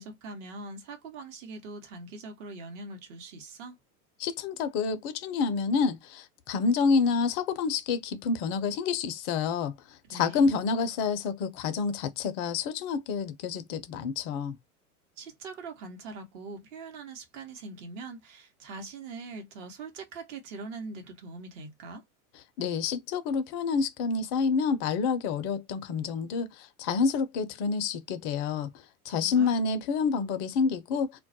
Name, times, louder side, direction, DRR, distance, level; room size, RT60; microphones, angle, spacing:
voice 1, 0.0-3.8 10.0-10.5 15.2-22.0 29.2-29.6, right 3 dB, 55° right, 0.9 m, -42 dB
voice 2, 4.2-9.7 10.1-14.6 22.6-28.7 29.1-31.1, left 5 dB, 35° left, 0.4 m, -28 dB
2.2 x 2.1 x 2.6 m
hypercardioid pair, 90°, 44 cm